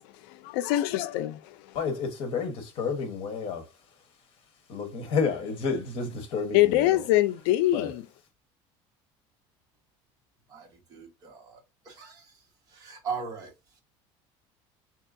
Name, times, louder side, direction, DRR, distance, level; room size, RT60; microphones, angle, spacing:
voice 1, 0.3-1.7 6.5-8.1, left 15 dB, 85° left, 0.4 m, -24 dB
voice 2, 1.7-3.7 4.7-7.0 7.7-7.9, left 5 dB, 50° left, 1.1 m, -30 dB
voice 3, 10.5-11.6 11.8-12.4 12.7-13.8, right 5 dB, 35° right, 1.2 m, -39 dB
5.4 x 2.8 x 2.5 m
cardioid pair, 170°, 11 cm